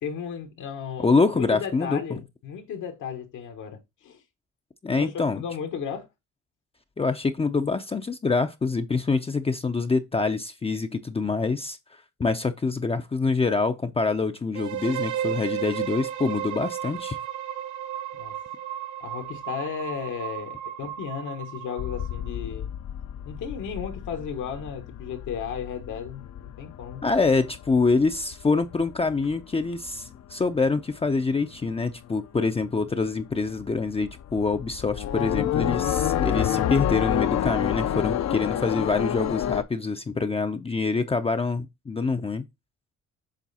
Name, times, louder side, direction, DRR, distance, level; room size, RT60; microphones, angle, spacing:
voice 1, 0.0-4.2 4.9-6.1 18.2-18.3 19.0-22.7 23.2-27.0 29.2-29.3, left 7 dB, 80° left, 1.4 m, -35 dB
voice 2, 1.0-2.0 4.8-5.4 7.0-11.8 12.2-17.2 27.0-42.4, left 4 dB, 20° left, 0.5 m, -25 dB
sound 1, 14.5-22.3, right 11 dB, 75° right, 1.0 m, -34 dB
sound 2, 21.8-30.7 31.0-31.7 32.0-32.1 32.5-39.6, left 10 dB, 60° left, 0.7 m, -29 dB
7.5 x 3.2 x 4.1 m
cardioid pair, 90°, 30 cm